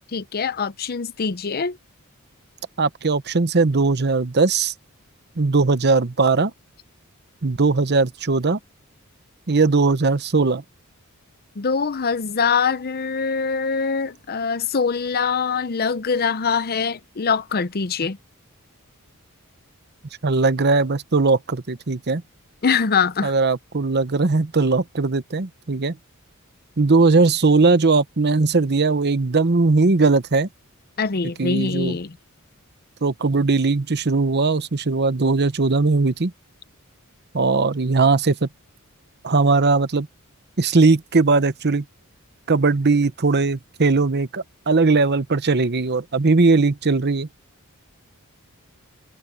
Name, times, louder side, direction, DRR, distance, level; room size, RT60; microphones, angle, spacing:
voice 1, 0.1-1.8 11.6-18.2 22.6-23.3 31.0-32.1, left 5 dB, 45° left, 0.7 m, -23 dB
voice 2, 2.8-4.7 5.4-6.5 7.4-8.6 9.5-10.6 20.2-22.2 23.2-26.0 26.8-30.5 31.4-32.0 33.0-36.3 37.3-38.5 39.2-40.1 40.6-41.8 42.5-47.3, right 3 dB, 50° right, 0.9 m, -19 dB
head